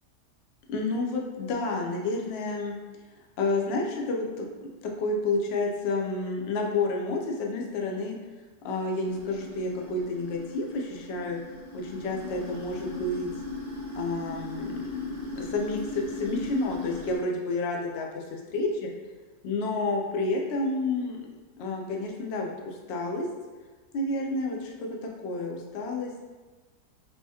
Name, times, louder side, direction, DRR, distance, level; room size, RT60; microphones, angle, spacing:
voice 1, 0.7-2.8 3.4-4.5 5.0-8.2 8.6-11.4 11.7-13.3 13.9-18.9 19.4-21.3 21.6-23.3 23.9-24.9 25.2-26.1, left 2 dB, 80° left, 0 dB, 0.5 m, -30 dB
sound 1, 9.0-17.2, left 3 dB, 20° right, 0.4 m, -38 dB
3.6 x 2.8 x 2.8 m, 1.4 s
omnidirectional pair, 1.7 m